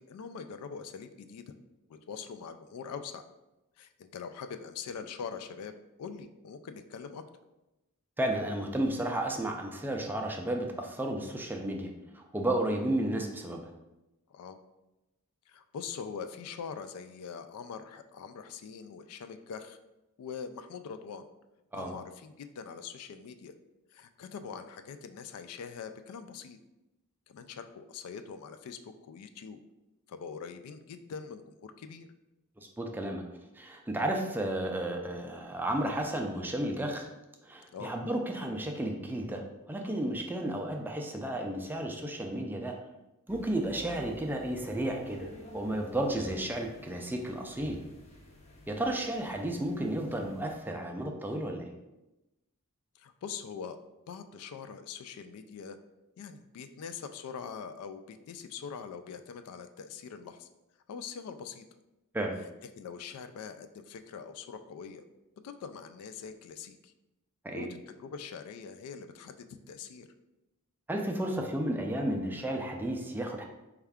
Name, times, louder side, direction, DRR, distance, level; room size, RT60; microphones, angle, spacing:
voice 1, 0.0-1.5 1.9-3.2 3.8-5.7 6.0-7.2 14.3-14.6 15.5-19.8 20.2-21.2 21.7-23.5 23.9-26.6 27.3-29.6 30.1-32.1 37.7-37.9 53.0-53.8 54.1-55.8 56.2-60.5 60.9-61.6 62.8-65.0 65.4-66.9 67.5-69.3 69.7-70.1, left 6 dB, 70° left, 10 dB, 0.3 m, -43 dB
voice 2, 8.2-11.9 12.1-13.7 21.7-21.9 32.8-33.2 33.5-37.1 37.4-42.8 43.3-45.3 45.5-47.8 48.7-51.7 62.1-62.4 67.4-67.7 70.9-73.4, right 1 dB, 10° right, 2 dB, 0.3 m, -33 dB
sound 1, 43.3-50.5, equal, 30° left, 0.6 m, -51 dB
4.3 x 2.4 x 3.5 m, 0.99 s
head